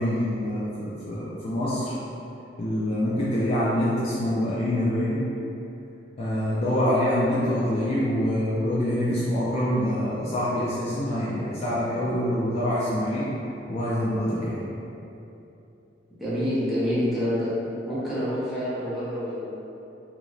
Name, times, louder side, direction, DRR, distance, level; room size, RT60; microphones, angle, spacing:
voice 1, 0.0-1.9 2.6-5.3 6.2-13.3 13.7-14.7, equal, 35° left, -8 dB, 0.4 m, -25 dB
voice 2, 16.2-17.5 17.8-19.5, equal, ahead, -12 dB, 0.9 m, -27 dB
3.0 x 2.9 x 2.5 m, 2.8 s
head